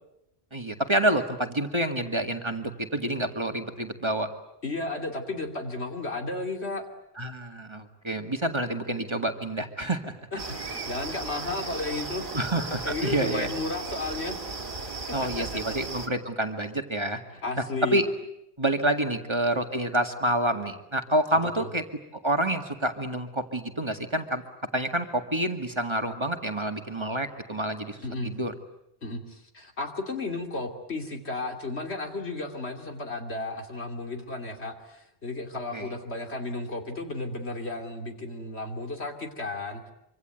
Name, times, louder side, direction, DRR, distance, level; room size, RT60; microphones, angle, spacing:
voice 1, 0.5-4.3 7.2-10.1 12.3-13.5 15.1-17.2 17.9-18.1 18.6-21.8 22.1-24.4 24.7-28.0 28.2-28.5 35.7-35.9, right 1 dB, 25° right, 6 dB, 2.1 m, -28 dB
voice 2, 4.6-6.9 10.3-12.2 12.8-14.4 15.2-15.7 17.4-18.0 21.6-21.7 28.0-28.3 29.0-39.8, left 2 dB, 85° left, 5 dB, 3.2 m, -33 dB
sound 1, 10.4-16.1, right 3 dB, 50° right, 2.5 m, -36 dB
25.5 x 25.5 x 9.3 m, 0.82 s
omnidirectional pair, 1.1 m